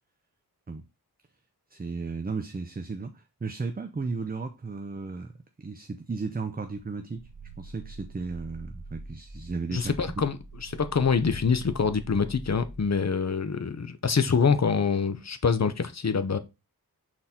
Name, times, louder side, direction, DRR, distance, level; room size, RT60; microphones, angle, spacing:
voice 1, 1.7-5.3 5.6-7.2 7.6-9.9, right 4 dB, 25° right, 0.6 m, -34 dB
Growling, 7.1-13.0, right 2 dB, 60° right, 1.7 m, -44 dB
voice 2, 9.7-16.4, left 5 dB, 45° left, 0.8 m, -25 dB
6.0 x 4.1 x 4.3 m
wide cardioid pair, 85°, 37 cm